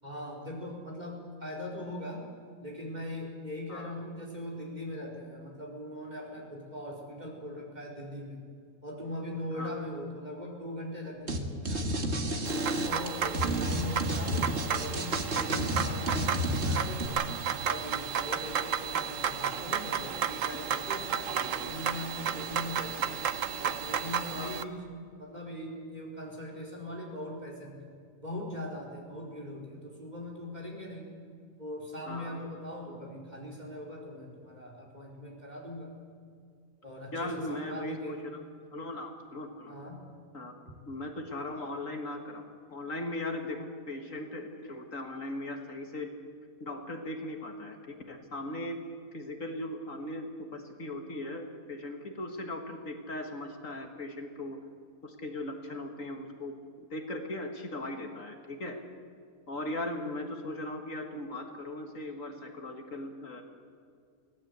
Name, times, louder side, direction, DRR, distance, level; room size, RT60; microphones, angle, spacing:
voice 1, 0.0-2.2 2.6-8.4 8.8-12.0 12.4-17.3 17.6-23.2 23.6-24.8 25.2-27.8 28.2-31.1 31.6-35.9 36.8-38.2 39.7-40.0, left 1 dB, 30° right, -1 dB, 4.8 m, -40 dB
sound 1, 11.3-11.4 11.7-17.1, right 1 dB, 45° right, 2.2 m, -30 dB
sound 2, 12.4-24.6, right 8 dB, 60° right, 1.2 m, -33 dB
voice 2, 24.3-24.7 32.1-32.4 37.1-38.2 38.7-39.7 40.3-40.5 40.9-42.4 42.7-46.1 46.6-48.8 49.1-54.6 55.0-56.6 56.9-58.8 59.5-63.4, left 1 dB, 60° left, 4 dB, 2.2 m, -38 dB
24.0 x 17.5 x 8.2 m, 2.3 s
omnidirectional pair, 1.6 m